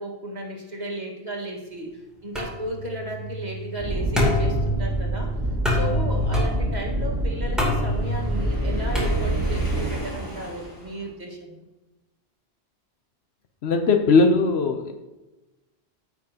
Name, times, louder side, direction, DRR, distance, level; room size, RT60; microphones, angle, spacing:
voice 1, 0.0-5.4 5.7-11.6, right 1 dB, 40° right, -1 dB, 1.7 m, -34 dB
sound 1, 2.4-9.7, left 1 dB, ahead, 2.7 m, -28 dB
Gods Vocal Dark Fantasy Thunder Thriller Atmo, 3.8-9.9, right 1 dB, 25° right, 1.7 m, -26 dB
Waves surf, 7.8-11.1, left 1 dB, 30° left, 2.6 m, -37 dB
voice 2, 13.6-14.9, left 4 dB, 75° left, 5 dB, 1.0 m, -19 dB
15.0 x 6.0 x 2.8 m, 1.1 s
omnidirectional pair, 1.1 m